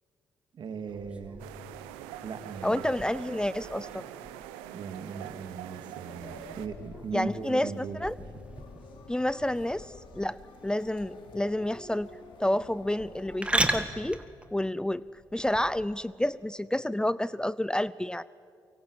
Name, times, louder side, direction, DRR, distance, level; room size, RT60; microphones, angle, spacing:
voice 1, 0.5-1.5 2.2-2.8 4.7-8.0, right 5 dB, 60° right, 8 dB, 2.3 m, -39 dB
sound 1, 0.9-15.9, right 1 dB, 15° right, 2.3 m, -38 dB
sound 2, 1.4-6.7, right 12 dB, 90° right, 0.9 m, -44 dB
voice 2, 2.6-4.0 7.1-8.2 9.1-12.1 12.4-14.2 14.5-15.0 15.3-18.2, left 1 dB, 10° left, 19 dB, 0.6 m, -29 dB
sound 3, 6.1-13.9, left 4 dB, 70° left, 3.3 m, -49 dB
24.0 x 23.5 x 8.2 m, 2.3 s
hypercardioid pair, 50°, 9 cm